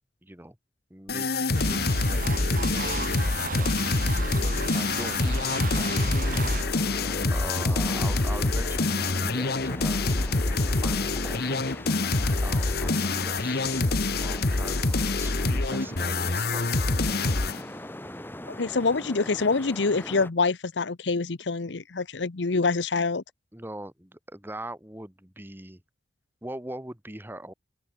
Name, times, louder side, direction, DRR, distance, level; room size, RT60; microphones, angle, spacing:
voice 1, 0.2-0.6 0.9-5.4 5.7-6.4 7.3-12.1 12.4-17.0 23.5-25.8 26.4-27.5, right 1 dB, 10° right, 2.0 m, -42 dB
sound 1, 1.1-17.6, left 3 dB, 60° left, 1.4 m, -26 dB
sound 2, 1.5-6.6, right 4 dB, 50° right, 1.8 m, -35 dB
sound 3, 5.2-20.3, left 1 dB, 10° left, 3.8 m, -41 dB
voice 2, 18.4-23.2, left 4 dB, 90° left, 0.9 m, -26 dB
open air
head